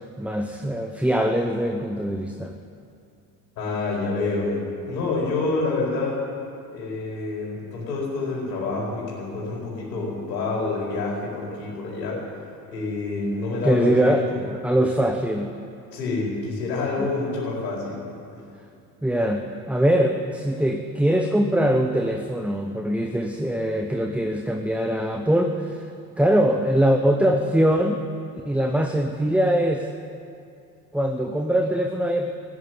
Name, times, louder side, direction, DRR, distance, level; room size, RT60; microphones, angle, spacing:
voice 1, 0.0-2.5 13.6-14.3 14.6-15.5 16.9-17.1 19.0-25.9 26.2-28.0 28.4-29.9 30.9-32.3, right 1 dB, 5° right, 5 dB, 0.9 m, -22 dB
voice 2, 3.6-6.2 6.7-12.2 12.7-14.4 15.9-18.0 18.3-18.4, left 3 dB, 85° left, -4 dB, 4.6 m, -27 dB
14.5 x 10.0 x 9.7 m, 2.5 s
hypercardioid pair, 70°, 49 cm